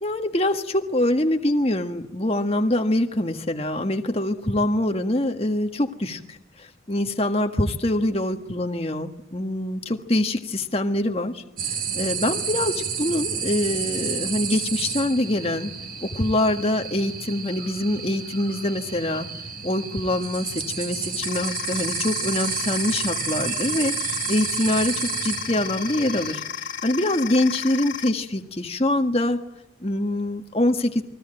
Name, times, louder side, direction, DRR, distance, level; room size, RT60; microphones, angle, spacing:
voice 1, 0.0-11.4 11.9-15.7 16.0-19.3 19.6-26.4 26.8-29.4 29.8-31.0, left 1 dB, 30° left, 5 dB, 1.6 m, -24 dB
sound 1, 11.6-26.3, right 6 dB, 45° right, 4.3 m, -31 dB
sound 2, 21.2-28.1, left 8 dB, 70° left, 2.3 m, -33 dB
29.0 x 22.0 x 9.0 m, 0.82 s
head